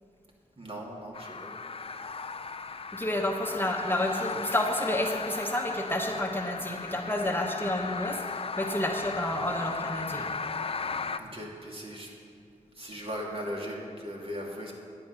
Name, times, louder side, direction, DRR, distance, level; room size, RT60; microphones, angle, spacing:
voice 1, 0.6-1.6 11.2-12.1 12.7-14.7, equal, 40° right, -2 dB, 2.5 m, -38 dB
sound 1, 1.1-11.2, left 4 dB, 45° left, 0.5 m, -36 dB
voice 2, 2.9-10.3, left 1 dB, 15° left, 2 dB, 1.1 m, -30 dB
10.5 x 8.6 x 5.9 m, 2.3 s
cardioid pair, 40°, 14 cm